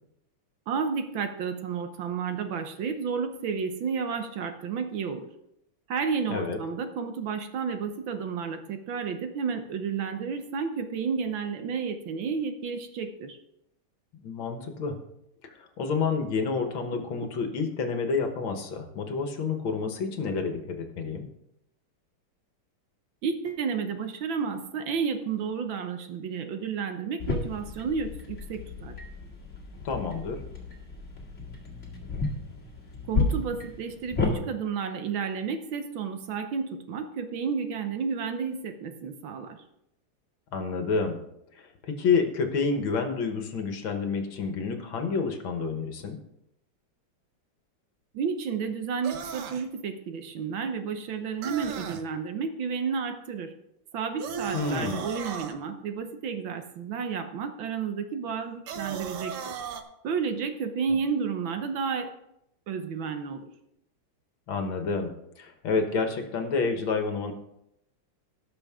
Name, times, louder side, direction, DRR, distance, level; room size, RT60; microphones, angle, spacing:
voice 1, 0.7-5.3 5.9-13.4 16.9-17.0 23.2-29.0 33.1-39.6 48.1-53.5 53.9-59.5 60.0-62.1 62.7-63.4, right 6 dB, 70° right, 7 dB, 1.6 m, -31 dB
voice 2, 14.2-15.0 15.4-21.2 29.8-30.4 40.5-41.2 41.5-46.2 54.5-55.1 64.5-67.3, left 4 dB, 70° left, 5 dB, 2.0 m, -29 dB
sound 1, 27.2-34.3, left 3 dB, 35° left, 2.2 m, -32 dB
sound 2, 49.0-49.7 51.4-52.0 54.2-55.5 58.7-59.8, right 7 dB, 90° right, 1.8 m, -36 dB
17.5 x 6.4 x 3.6 m, 0.81 s
omnidirectional pair, 2.3 m